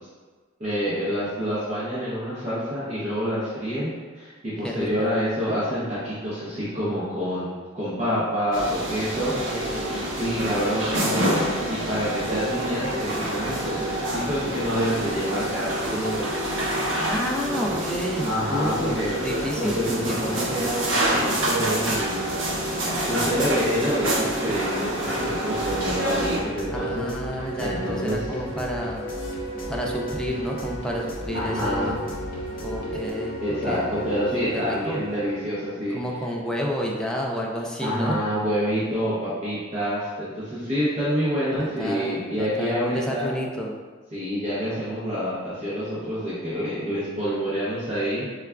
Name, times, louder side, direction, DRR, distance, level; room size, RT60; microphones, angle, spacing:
voice 1, 0.6-7.5 7.7-9.6 10.1-16.5 18.2-19.1 19.6-22.4 23.1-27.1 27.3-28.3 31.3-32.0 32.9-36.0 37.8-43.3 44.1-48.3, equal, 35° right, -11 dB, 0.7 m, -27 dB
voice 2, 4.6-5.1 9.5-10.0 17.0-19.7 20.1-20.5 26.7-29.1 29.7-31.9 32.6-34.2 34.5-35.0 35.9-38.2 41.6-43.7, equal, 5° left, -2 dB, 0.3 m, -30 dB
sound 1, 8.5-26.4, right 1 dB, 75° right, 0.7 m, -27 dB
sound 2, 23.7-36.3, right 1 dB, 80° left, 0.6 m, -36 dB
sound 3, 25.6-33.1, equal, 50° left, 0.7 m, -39 dB
4.7 x 2.3 x 2.2 m, 1.4 s
head